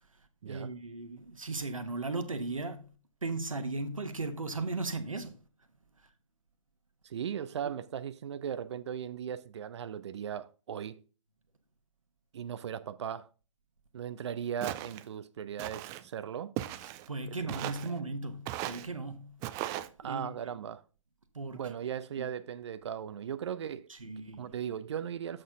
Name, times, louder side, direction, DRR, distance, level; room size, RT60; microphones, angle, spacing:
voice 1, 0.4-2.9 3.2-5.4 7.6-7.7 16.8-19.4 19.8-20.3 21.3-21.6 22.2-22.3 23.9-24.5, right 3 dB, 85° right, 1.2 m, -37 dB
voice 2, 7.0-11.0 12.3-13.3 13.9-16.5 17.6-17.9 20.0-20.8 21.5-25.4, right 8 dB, 60° right, 0.6 m, -38 dB
Walk footsteps, 14.6-15.0 15.6-16.0 16.6-17.1 17.5-17.9 18.5-18.9 19.4-19.9, right 14 dB, 20° right, 0.3 m, -37 dB
7.7 x 6.6 x 3.7 m
figure-of-eight pair, 125°, 17 cm